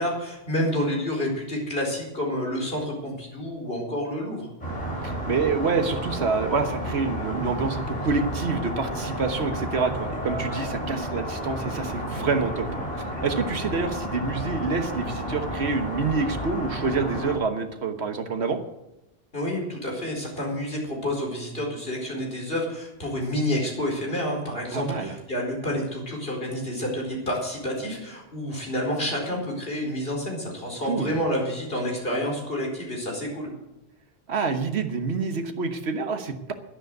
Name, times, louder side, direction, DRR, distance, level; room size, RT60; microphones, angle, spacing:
voice 1, 0.0-4.5 19.3-33.5, left 1 dB, 60° left, -1 dB, 4.7 m, -29 dB
sound 1, 4.6-17.4, equal, 40° left, 5.2 m, -31 dB
voice 2, 5.0-12.7 13.2-18.6 24.7-25.1 30.8-31.1 34.3-36.5, right 4 dB, 80° right, 7 dB, 1.5 m, -27 dB
11.5 x 10.5 x 8.0 m, 0.92 s
omnidirectional pair, 1.1 m